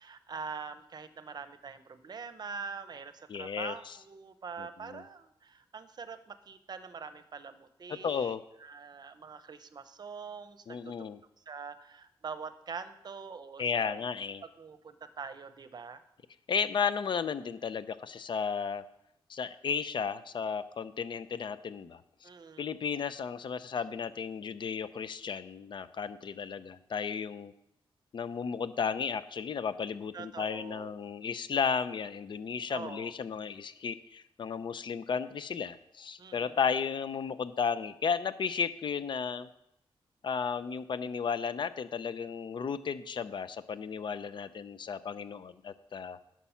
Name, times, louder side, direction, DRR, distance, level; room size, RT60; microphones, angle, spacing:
voice 1, 0.0-11.1 11.4-14.1 14.4-16.0 22.2-22.7 30.1-31.1 32.7-33.1 36.2-36.6, right 5 dB, 45° right, 11 dB, 0.7 m, -44 dB
voice 2, 3.3-4.0 4.6-5.0 8.0-8.4 10.7-11.2 13.6-14.4 16.5-18.8 19.3-22.3 22.6-27.5 28.1-39.5 40.2-46.2, left 6 dB, 55° left, 14 dB, 0.6 m, -34 dB
11.5 x 6.1 x 5.7 m, 0.81 s
wide cardioid pair, 125°, 10 cm